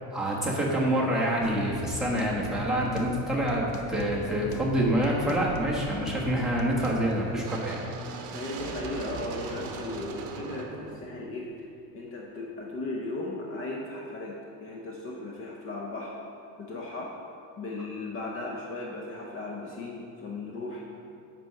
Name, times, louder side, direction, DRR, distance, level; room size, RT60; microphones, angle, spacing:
voice 1, 0.1-7.8, right 1 dB, ahead, -4 dB, 1.2 m, -27 dB
sound 1, 1.4-7.1, left 3 dB, 55° left, 1.0 m, -38 dB
sound 2, 4.0-12.1, right 5 dB, 50° right, 1.0 m, -41 dB
voice 2, 8.3-16.2 16.6-17.1 17.6-20.8, left 2 dB, 30° left, -1 dB, 0.8 m, -36 dB
8.0 x 6.1 x 5.6 m, 2.5 s
cardioid pair, 165°, 41 cm